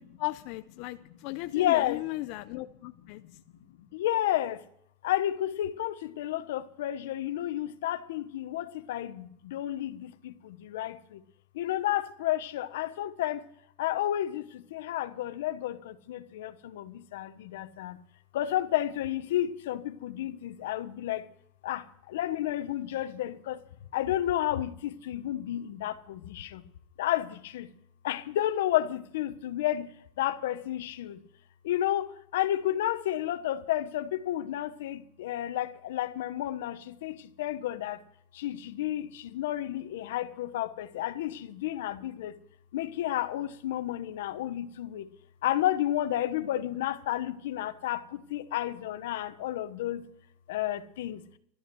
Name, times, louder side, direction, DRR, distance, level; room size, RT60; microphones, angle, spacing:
voice 1, 0.0-3.2, left 19 dB, 50° left, 0.6 m, -36 dB
voice 2, 1.5-2.0 3.1-3.3 3.8-4.6 5.0-11.2 11.5-13.4 13.8-18.0 18.3-21.3 21.6-23.6 23.9-26.6 27.0-27.7 28.0-29.9 30.2-31.2 31.6-38.0 38.3-42.4 42.7-45.1 45.4-50.1 50.5-51.2, left 13 dB, 85° left, 1.1 m, -31 dB
13.0 x 12.5 x 6.3 m
supercardioid pair, 165°, 0 cm